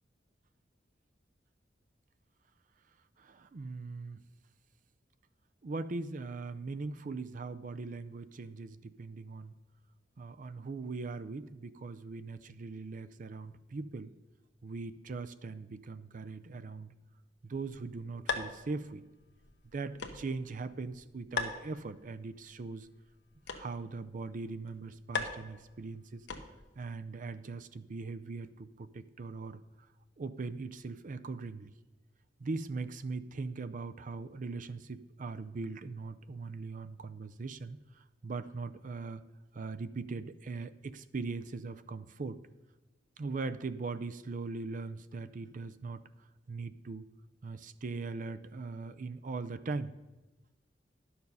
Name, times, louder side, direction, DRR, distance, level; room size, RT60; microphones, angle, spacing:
voice 1, 3.2-4.2 5.6-9.5 10.2-14.1 14.6-16.9 17.4-19.0 19.7-22.9 23.5-26.3 26.8-29.6 30.2-31.7 32.4-39.2 39.5-42.4 43.2-46.0 46.5-47.1 47.4-49.9, right 3 dB, 45° right, 12 dB, 0.5 m, -40 dB
sound 1, 17.5-26.8, left 4 dB, 70° left, 1.0 m, -42 dB
11.0 x 7.0 x 5.4 m, 1.1 s
head